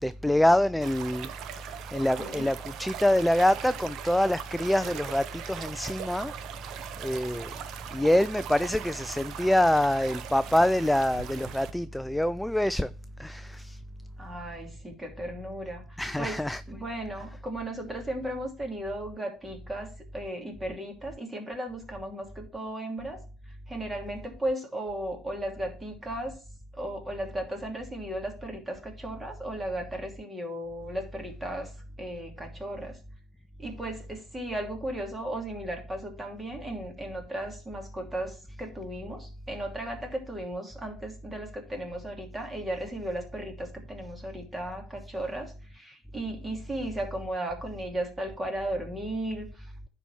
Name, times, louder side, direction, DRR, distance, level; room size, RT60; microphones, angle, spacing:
voice 1, 0.0-6.3 7.0-7.5 7.9-12.9 13.2-13.8 16.0-16.6, left 1 dB, 5° left, 0.3 m, -25 dB
sound 1, 0.8-11.7, right 9 dB, 60° right, 0.9 m, -40 dB
voice 2, 2.2-2.5 14.2-16.4 16.7-26.4 26.7-33.0 33.6-49.9, right 1 dB, 15° right, 2.7 m, -36 dB
10.0 x 4.1 x 5.8 m
cardioid pair, 120°, 0 cm